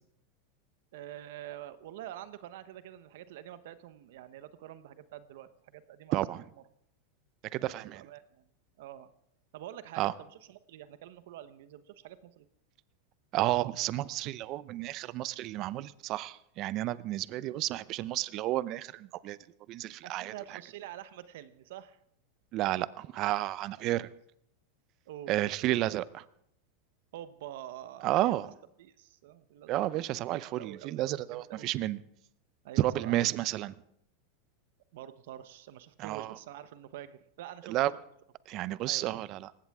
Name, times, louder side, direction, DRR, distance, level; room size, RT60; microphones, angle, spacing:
voice 1, 0.9-6.4 7.6-8.5 8.8-9.1 9.5-12.5 20.0-22.0 24.0-24.1 25.1-25.3 27.1-28.4 28.8-30.0 30.4-31.7 32.6-33.2 34.9-37.7 38.9-39.2, right 12 dB, 70° right, 14 dB, 0.9 m, -46 dB
voice 2, 6.1-6.4 7.5-8.0 10.0-10.1 13.3-19.4 19.7-20.3 22.5-24.1 25.3-26.2 28.0-28.5 29.7-32.0 32.8-33.7 36.0-36.3 37.7-37.9 38.5-39.5, right 15 dB, 45° right, 18 dB, 0.6 m, -31 dB
19.0 x 16.0 x 3.6 m, 0.74 s
supercardioid pair, 120°, 0 cm